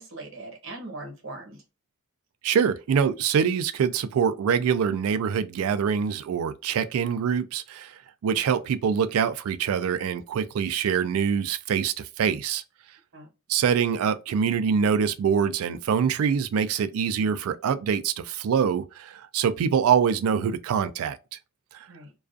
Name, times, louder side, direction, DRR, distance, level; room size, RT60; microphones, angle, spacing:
voice 1, 0.0-1.6 13.1-13.3 21.9-22.1, right 2 dB, 60° right, 0.9 m, -40 dB
voice 2, 2.4-7.9 8.2-12.6 13.5-21.2 21.7-21.9, right 7 dB, 80° right, 0.3 m, -24 dB
2.4 x 2.3 x 2.4 m
head